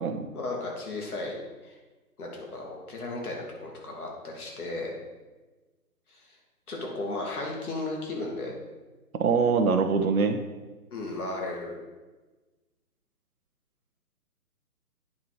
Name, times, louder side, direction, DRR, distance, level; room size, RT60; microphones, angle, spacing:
voice 1, 0.3-1.4 1.6-1.7 2.2-4.9 6.1-6.2 6.7-8.5 10.9-11.8, left 2 dB, 70° left, -1 dB, 2.4 m, -35 dB
voice 2, 9.2-10.4, right 5 dB, 65° right, 6 dB, 1.0 m, -23 dB
9.4 x 4.3 x 4.7 m, 1.2 s
hypercardioid pair, 150°, 46 cm